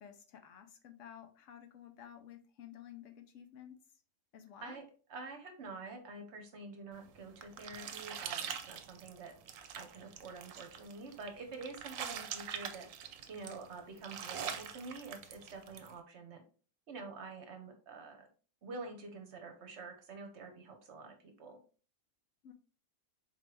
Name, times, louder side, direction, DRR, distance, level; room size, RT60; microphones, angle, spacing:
voice 1, 0.0-3.8 4.3-4.8 22.4-22.5, left 9 dB, 75° left, 6 dB, 1.0 m, -53 dB
voice 2, 5.1-9.3 9.7-12.9 13.3-16.4 16.9-18.3 18.6-21.6, right 3 dB, 60° right, 4 dB, 1.1 m, -47 dB
sound 1, 7.0-15.9, right 8 dB, 80° right, 1.0 m, -44 dB
4.1 x 3.2 x 3.2 m, 0.38 s
omnidirectional pair, 1.4 m